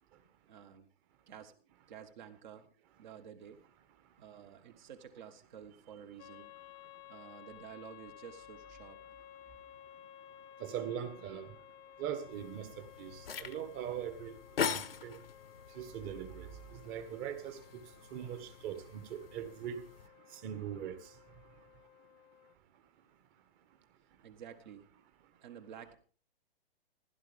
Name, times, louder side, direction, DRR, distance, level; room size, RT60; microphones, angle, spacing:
voice 1, 0.5-0.9 1.3-1.5 1.9-2.7 3.0-3.6 4.2-6.5 7.1-9.0 24.2-24.8 25.4-25.9, right 8 dB, 50° right, 1.7 m, -51 dB
sound 1, 6.2-22.5, left 12 dB, 15° left, 0.5 m, -56 dB
voice 2, 10.6-11.5 12.0-12.7 13.0-14.3 14.6-15.2 15.7-17.8 18.1-19.8 20.3-21.0, right 9 dB, 30° right, 1.6 m, -41 dB
sound 2, 12.3-20.1, left 7 dB, 70° left, 1.1 m, -43 dB
15.5 x 12.0 x 3.6 m
figure-of-eight pair, 125°, 30 cm